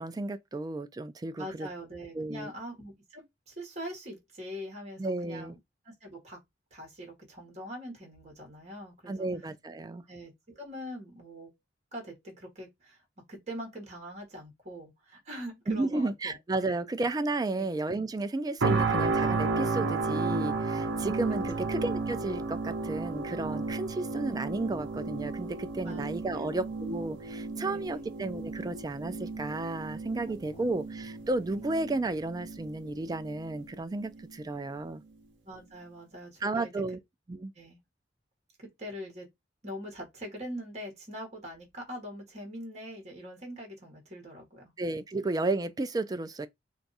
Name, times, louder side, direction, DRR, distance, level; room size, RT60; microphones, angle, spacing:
voice 1, 0.0-1.7 2.1-2.5 5.0-5.6 9.1-10.0 15.7-35.0 36.4-37.0 37.3-37.5 44.8-46.5, right 2 dB, 20° right, 0.3 m, -33 dB
voice 2, 1.4-5.6 5.8-6.4 6.7-9.3 10.1-11.5 11.9-13.0 13.3-16.4 16.6-16.8 17.5-17.7 21.5-21.7 25.8-26.6 27.6-28.1 30.3-30.7 35.4-37.0 37.5-37.8 38.6-39.3 39.6-44.7, equal, 40° right, 1.2 m, -43 dB
sound 1, 18.6-33.6 34.1-34.3, right 3 dB, 75° right, 0.6 m, -33 dB
2.5 x 2.3 x 3.9 m
head